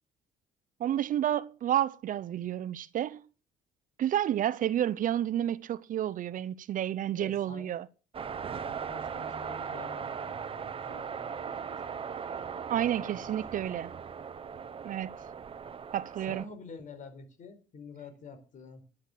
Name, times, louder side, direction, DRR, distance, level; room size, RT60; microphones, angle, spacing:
voice 1, 0.8-3.2 4.0-7.9 12.7-13.9 14.8-15.1 15.9-16.4, right 11 dB, 50° right, 0.7 m, -30 dB
voice 2, 7.2-7.7 8.5-12.2 12.7-13.7 16.3-18.8, left 4 dB, 50° left, 4.6 m, -48 dB
sound 1, 8.1-16.5, right 6 dB, 35° right, 1.0 m, -38 dB
10.5 x 10.0 x 7.4 m
cardioid pair, 110°, 17 cm